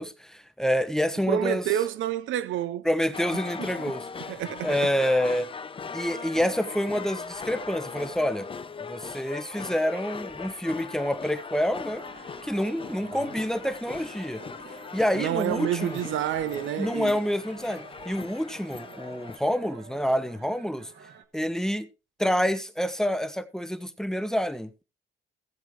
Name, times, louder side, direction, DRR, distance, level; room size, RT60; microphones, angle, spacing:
voice 1, 0.0-1.6 2.8-4.3 4.6-5.5 5.9-8.5 8.8-12.0 12.4-14.4 14.9-16.0 16.8-20.9 21.3-21.9 22.2-24.8, equal, 5° left, 0.9 m, -27 dB
voice 2, 1.3-2.9 3.6-3.9 4.3-4.9 13.1-13.3 15.1-17.2, right 11 dB, 80° right, 0.6 m, -29 dB
sound 1, 3.1-19.4, left 5 dB, 25° left, 0.6 m, -39 dB
sound 2, 11.9-21.3, right 5 dB, 60° right, 1.4 m, -50 dB
16.5 x 7.3 x 3.2 m
cardioid pair, 90°, 20 cm